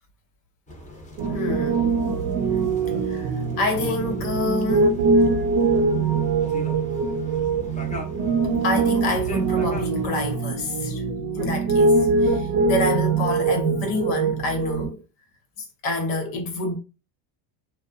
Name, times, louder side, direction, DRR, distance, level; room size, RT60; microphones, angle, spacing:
sound 1, 0.7-10.4, equal, 15° left, 0.6 m, -40 dB
Piano, 1.2-14.9, right 4 dB, 55° right, 0.6 m, -23 dB
voice 1, 1.3-1.9 3.1-5.0 8.6-11.0 11.3-15.0 15.6-16.7, left 2 dB, 85° left, 1.1 m, -28 dB
2.7 x 2.3 x 2.3 m
cardioid pair, 110°, 49 cm